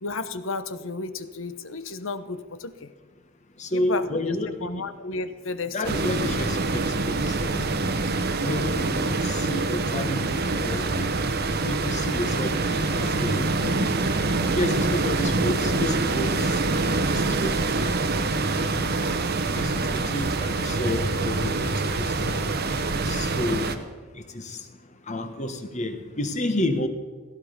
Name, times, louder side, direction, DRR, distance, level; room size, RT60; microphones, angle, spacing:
voice 1, 0.0-2.9 3.7-4.2 4.6-6.0, left 3 dB, 65° left, 12 dB, 1.0 m, -33 dB
voice 2, 3.6-4.7 5.7-7.7 8.4-11.1 11.6-13.9 14.5-17.9 18.5-18.9 19.5-22.4 23.0-23.7 24.3-24.6 25.1-26.9, left 1 dB, 35° left, 7 dB, 1.4 m, -31 dB
sound 1, 5.8-23.8, right 3 dB, 50° right, 1.1 m, -25 dB
16.5 x 15.0 x 5.2 m, 1.4 s
head